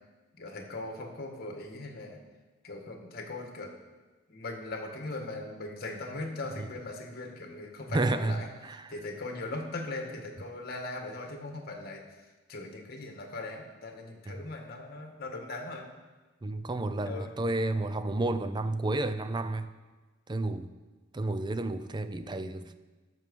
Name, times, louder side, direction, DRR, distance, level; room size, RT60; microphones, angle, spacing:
voice 1, 0.3-2.2 2.6-3.7 4.3-8.5 8.9-12.0 12.5-15.8 17.0-17.3, left 2 dB, 50° left, 2 dB, 1.7 m, -39 dB
voice 2, 7.9-8.9 14.3-14.4 16.4-19.7 20.3-20.7 21.1-22.8, right 2 dB, 25° right, 11 dB, 0.5 m, -31 dB
13.0 x 6.3 x 5.3 m, 1.2 s
head